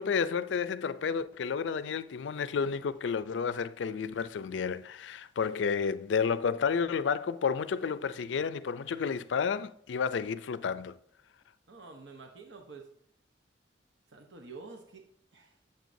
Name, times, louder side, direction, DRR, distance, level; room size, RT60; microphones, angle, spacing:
voice 1, 0.0-11.0, left 6 dB, 85° left, 0.4 m, -31 dB
voice 2, 11.7-12.9 14.1-15.0 15.3-15.5, right 4 dB, 85° right, 0.9 m, -48 dB
9.2 x 7.0 x 2.7 m
head